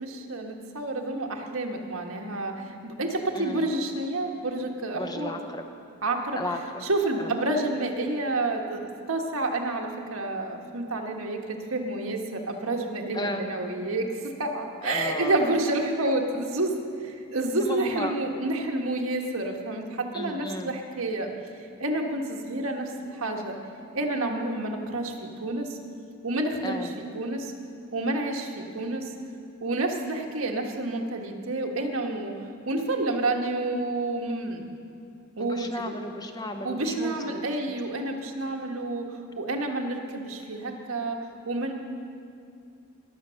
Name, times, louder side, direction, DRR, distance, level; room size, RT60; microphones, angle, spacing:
voice 1, 0.0-5.3 6.0-6.4 6.8-11.4 11.7-21.3 21.8-23.6 23.9-25.1 25.4-25.8 26.2-26.9 27.1-27.5 27.9-29.0 29.6-32.3 32.7-34.6 35.4-35.7 36.6-41.2 41.4-41.7, right 2 dB, 80° right, 2 dB, 1.4 m, -29 dB
voice 2, 3.3-3.8 4.9-5.6 6.3-6.9 7.2-7.3 13.1-13.5 14.8-15.6 17.6-18.1 20.1-20.7 26.6-27.0 35.4-37.8, left 1 dB, 20° left, 5 dB, 0.7 m, -34 dB
20.0 x 7.5 x 6.4 m, 2.4 s
head